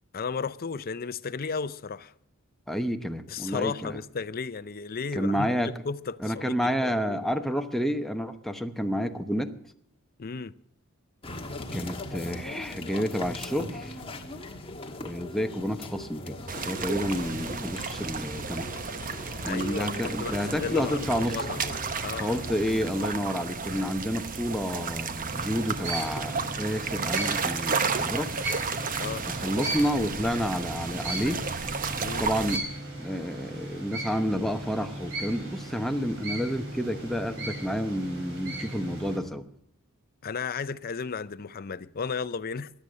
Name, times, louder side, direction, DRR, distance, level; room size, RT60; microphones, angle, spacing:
voice 1, 0.1-2.1 3.3-7.3 10.2-10.5 19.1-21.6 22.0-22.4 29.0-29.3 32.0-32.3 40.2-42.7, left 5 dB, 45° left, 0.6 m, -34 dB
voice 2, 2.7-4.0 5.1-5.7 6.2-9.5 11.7-13.9 15.0-16.4 16.6-18.7 19.4-21.4 22.1-28.3 29.3-31.4 32.2-32.7 33.0-39.5, equal, ahead, 0.9 m, -30 dB
sound 1, 11.2-23.1, left 2 dB, 25° left, 1.4 m, -40 dB
sound 2, 16.5-32.6, right 5 dB, 40° right, 0.9 m, -33 dB
sound 3, 25.3-39.2, right 2 dB, 65° right, 4.5 m, -37 dB
21.5 x 8.4 x 6.4 m
head